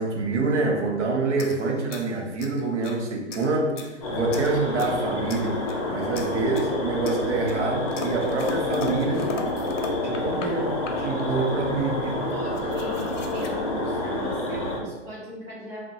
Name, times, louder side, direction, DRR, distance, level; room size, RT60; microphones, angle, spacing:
voice 1, 0.0-5.6 5.9-9.4 10.0-12.3, right 3 dB, 70° right, 1 dB, 0.6 m, -26 dB
sound 1, 1.4-3.0 3.3-4.0 4.3-5.0 5.3-5.9 6.1-6.7 7.0-10.5 10.8-11.3 12.0-12.1 12.3-13.5, left 4 dB, 80° left, 0.6 m, -38 dB
sound 2, 4.0-14.8, left 1 dB, 30° left, 0.5 m, -28 dB
voice 2, 12.3-15.9, equal, 15° right, -9 dB, 0.6 m, -39 dB
2.7 x 2.1 x 2.7 m, 1.2 s
hypercardioid pair, 160°, 36 cm